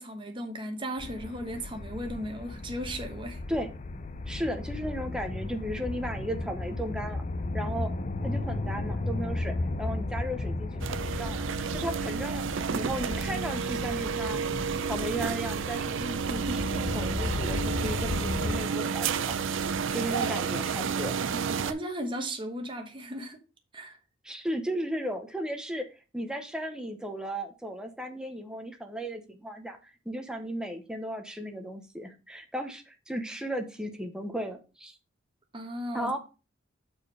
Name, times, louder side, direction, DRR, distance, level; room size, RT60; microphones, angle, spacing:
voice 1, 0.0-3.4 21.3-23.4 23.7-24.0 35.5-36.1, equal, 25° right, 1.1 m, -36 dB
sound 1, 1.0-18.6, left 2 dB, 35° left, 0.5 m, -35 dB
voice 2, 4.3-7.2 7.5-7.9 8.2-11.4 11.7-14.4 14.9-19.4 19.9-21.1 24.2-35.0 35.9-36.2, right 1 dB, 5° right, 0.8 m, -35 dB
sound 2, 10.8-21.7, right 6 dB, 60° right, 0.5 m, -31 dB
6.6 x 4.5 x 4.9 m
head